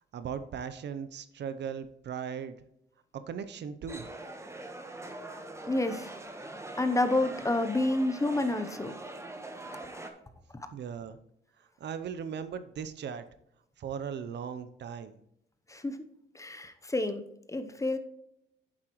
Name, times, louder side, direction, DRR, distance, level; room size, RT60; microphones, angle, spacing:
voice 1, 0.1-2.6 3.1-4.1 10.7-11.2 11.8-13.2 13.8-15.2, right 7 dB, 60° right, 11 dB, 0.7 m, -38 dB
sound 1, 3.9-10.1, right 2 dB, 15° right, 1.3 m, -43 dB
voice 2, 5.7-6.1 6.8-8.9 9.9-10.1 15.7-16.1 16.3-17.2 17.5-18.0, left 2 dB, 15° left, 9 dB, 0.9 m, -29 dB
9.1 x 7.5 x 3.1 m, 0.79 s
cardioid pair, 90°, 20 cm